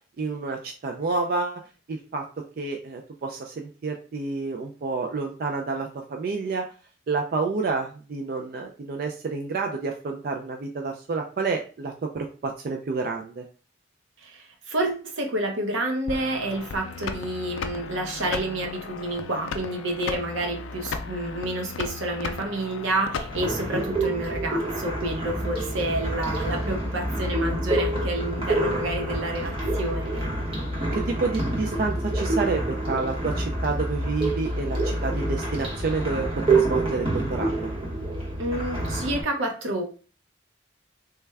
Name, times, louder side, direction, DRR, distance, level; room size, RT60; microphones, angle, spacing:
voice 1, 0.2-1.6 1.9-2.2 2.6-6.6 7.1-13.4 30.9-37.7, right 4 dB, 50° right, 3 dB, 0.3 m, -29 dB
voice 2, 14.2-30.3 38.4-39.8, right 1 dB, 80° right, 3 dB, 0.8 m, -29 dB
sound 1, 16.1-23.7, left 5 dB, 80° left, 0.4 m, -35 dB
sound 2, 23.3-39.2, right 2 dB, 30° right, 0.8 m, -28 dB
sound 3, 25.3-37.3, left 1 dB, 20° left, 1.0 m, -33 dB
3.3 x 2.1 x 3.3 m, 0.37 s
head